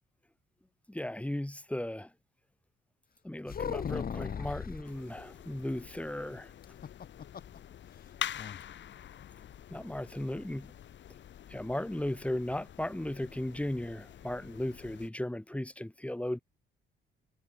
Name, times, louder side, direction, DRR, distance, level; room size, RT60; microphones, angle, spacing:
voice 1, 0.9-2.1 3.2-6.5 9.7-10.7 11.5-16.4, left 1 dB, 5° left, 4.5 m, -36 dB
sound 1, 3.5-4.9 6.6-7.6 7.9-8.0 8.4-8.6, left 7 dB, 50° left, 3.0 m, -37 dB
sound 2, 4.8-15.1, left 10 dB, 70° left, 6.9 m, -46 dB
cardioid pair, 90°, 20 cm